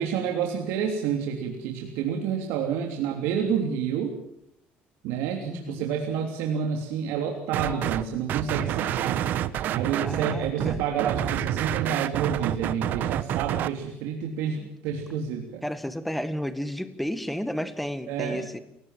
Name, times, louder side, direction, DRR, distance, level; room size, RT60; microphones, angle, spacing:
voice 1, 0.0-4.1 5.0-9.2 9.7-15.6 18.1-18.5, right 7 dB, 85° right, 2 dB, 3.2 m, -29 dB
voice 2, 5.4-5.9 10.0-10.8 15.6-18.6, equal, ahead, 11 dB, 1.6 m, -32 dB
sound 1, 7.5-8.0 8.3-13.7, right 11 dB, 50° right, 1.1 m, -28 dB
29.0 x 17.5 x 7.6 m, 0.78 s
cardioid pair, 155°, 4 cm